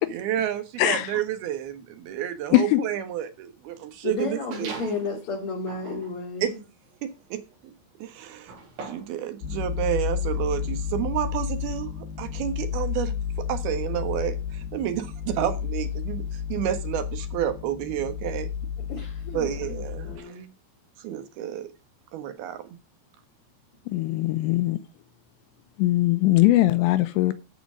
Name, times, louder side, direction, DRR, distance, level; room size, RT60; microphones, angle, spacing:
voice 1, 0.1-5.0 6.4-6.5 7.0-7.4 8.0-8.5 8.8-13.1 13.5-18.5 19.3-20.4 21.0-21.7 22.1-22.8, right 11 dB, 65° right, 3.0 m, -30 dB
voice 2, 0.8-1.1 2.5-2.8 23.9-24.8 25.8-27.3, left 16 dB, 80° left, 2.7 m, -21 dB
voice 3, 4.0-6.6 18.9-20.5, left 3 dB, 35° left, 3.1 m, -33 dB
sound 1, 4.5-5.1 5.6-9.2, right 4 dB, 85° right, 6.2 m, -42 dB
sound 2, 9.4-20.2, left 7 dB, 60° left, 3.4 m, -31 dB
14.0 x 4.9 x 6.3 m
omnidirectional pair, 5.3 m